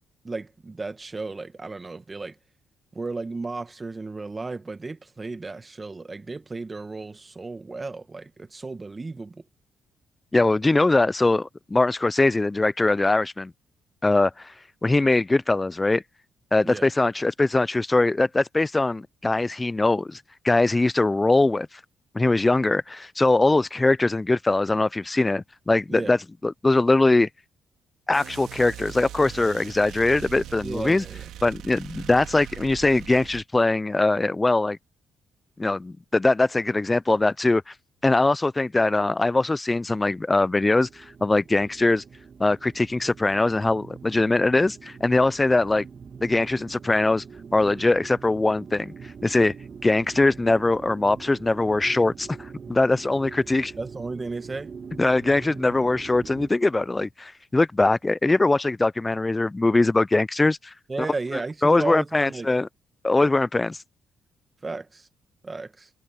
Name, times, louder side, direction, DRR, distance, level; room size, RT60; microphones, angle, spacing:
voice 1, 0.2-2.3 2.9-9.4 16.6-16.9 25.9-26.1 30.6-31.2 53.8-54.7 60.9-62.5 64.6-65.1 65.4-65.9, right 3 dB, 25° right, 1.6 m, -34 dB
voice 2, 10.3-13.5 14.0-14.5 14.8-16.0 16.5-21.7 22.1-27.3 28.1-31.0 31.4-34.8 35.6-37.6 38.0-42.0 42.4-45.8 46.2-47.2 47.5-48.9 49.2-49.5 49.8-53.7 55.0-60.7 61.3-62.7 63.0-63.8, left 2 dB, 20° left, 0.4 m, -22 dB
sound 1, 28.1-33.4, right 12 dB, 85° right, 2.9 m, -41 dB
sound 2, 40.6-56.5, right 6 dB, 45° right, 1.7 m, -43 dB
cardioid pair, 90°, 0 cm